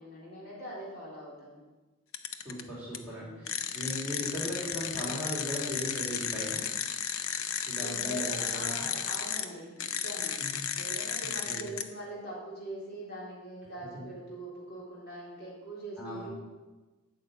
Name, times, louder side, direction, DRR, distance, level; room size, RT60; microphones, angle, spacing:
voice 1, 0.0-1.6 3.2-3.7 7.7-10.4 10.7-16.3, right 1 dB, 45° left, -5 dB, 4.1 m, -43 dB
sound 1, 2.1-2.6 2.9-3.0 3.5-9.5 9.8-11.8, left 8 dB, 70° left, 0.8 m, -34 dB
voice 2, 2.4-6.7 7.6-8.9 10.4-10.7 11.2-11.7 13.9-14.0 16.0-16.3, equal, 5° right, -6 dB, 4.5 m, -38 dB
9.0 x 6.7 x 8.7 m, 1.2 s
head